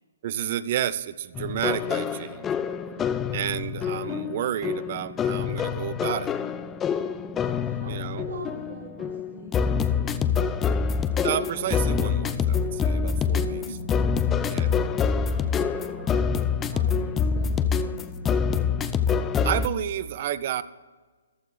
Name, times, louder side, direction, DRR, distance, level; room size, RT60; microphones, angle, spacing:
voice 1, 0.2-2.5 3.3-6.3 7.9-8.3 11.2-13.8 14.5-14.8 19.4-20.6, right 11 dB, 45° right, 16 dB, 0.6 m, -30 dB
sound 1, 1.3-19.7, left 6 dB, 15° left, 0.5 m, -26 dB
voice 2, 2.8-3.2 6.9-10.7 13.3-14.2 14.5-18.6, right 2 dB, 80° right, -5 dB, 3.0 m, -44 dB
14.5 x 12.0 x 3.3 m, 1.4 s
hypercardioid pair, 145°, 0 cm